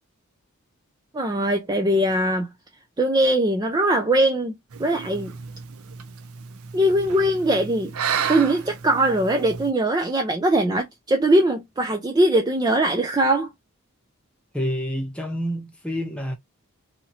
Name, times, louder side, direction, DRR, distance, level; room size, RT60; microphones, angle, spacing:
voice 1, 1.1-2.5 3.0-5.3 6.7-7.9 8.3-13.5, right 1 dB, 20° right, 0.3 m, -21 dB
sound 1, 4.7-9.7, right 7 dB, 75° right, 0.5 m, -32 dB
voice 2, 14.5-16.3, equal, 5° left, 0.8 m, -28 dB
2.8 x 2.8 x 2.6 m
head